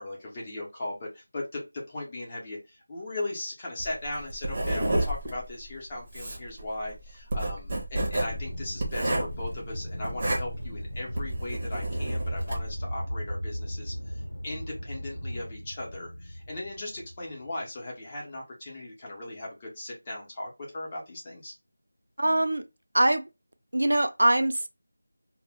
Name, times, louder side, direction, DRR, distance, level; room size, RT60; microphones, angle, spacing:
voice 1, 0.0-21.5, left 1 dB, 20° left, 0.6 m, -38 dB
Writing, 3.8-12.7, right 1 dB, 25° right, 0.6 m, -31 dB
Aircraft, 8.0-17.5, equal, 80° left, 0.8 m, -36 dB
voice 2, 22.2-22.6 22.9-23.2 23.7-24.7, right 1 dB, 80° right, 0.4 m, -23 dB
2.1 x 2.1 x 3.4 m
figure-of-eight pair, 175°, 0 cm